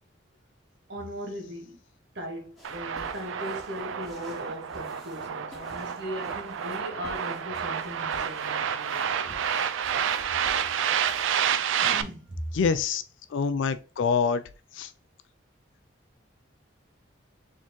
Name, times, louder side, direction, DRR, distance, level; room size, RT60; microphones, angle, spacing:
voice 1, 0.9-1.8 2.1-9.4 11.8-12.4, equal, 60° right, 1.4 m, -39 dB
sound 1, 2.6-11.6, equal, ahead, 1.4 m, -50 dB
Noise Buildup, 2.6-12.0, right 8 dB, 75° right, 0.4 m, -29 dB
voice 2, 12.5-13.0 13.3-14.4 14.8-14.9, left 5 dB, 70° left, 0.3 m, -25 dB
4.2 x 3.7 x 3.0 m
head